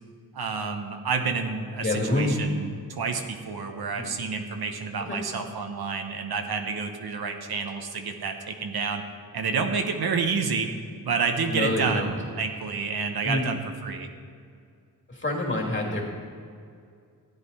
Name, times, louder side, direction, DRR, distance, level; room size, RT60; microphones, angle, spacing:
voice 1, 0.3-9.0 9.3-10.7 11.0-14.1, right 5 dB, 80° right, 5 dB, 1.0 m, -29 dB
voice 2, 1.8-2.3 4.0-4.1 5.1-5.2 11.5-12.1 13.2-13.5 15.1-16.0, left 1 dB, 30° left, -1 dB, 2.9 m, -27 dB
13.5 x 9.2 x 4.2 m, 2.2 s
cardioid pair, 60°, 37 cm